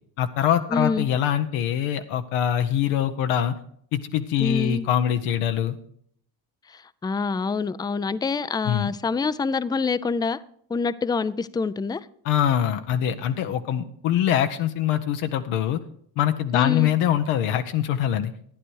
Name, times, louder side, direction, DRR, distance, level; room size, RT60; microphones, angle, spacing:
voice 1, 0.2-3.6 3.9-5.8 8.6-8.9 12.2-15.8 16.2-18.3, left 10 dB, 80° left, 0.9 m, -23 dB
voice 2, 0.7-1.1 4.4-4.9 6.7-10.4 10.7-12.1 16.5-16.9, left 4 dB, 10° left, 0.3 m, -26 dB
12.0 x 9.8 x 4.7 m
supercardioid pair, 70°, 50 cm